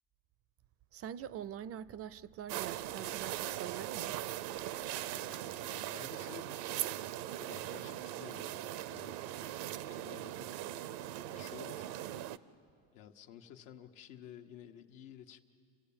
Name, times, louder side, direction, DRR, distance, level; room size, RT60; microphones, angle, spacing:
voice 1, 0.9-4.2, right 10 dB, 40° right, 0.4 m, -44 dB
sound 1, 2.5-12.4, right 13 dB, 80° right, 0.7 m, -40 dB
voice 2, 5.1-6.8 7.4-9.3 9.9-10.5 11.3-12.3 12.9-15.4, left 9 dB, 90° left, 1.3 m, -53 dB
28.0 x 16.0 x 8.7 m
cardioid pair, 125°, 39 cm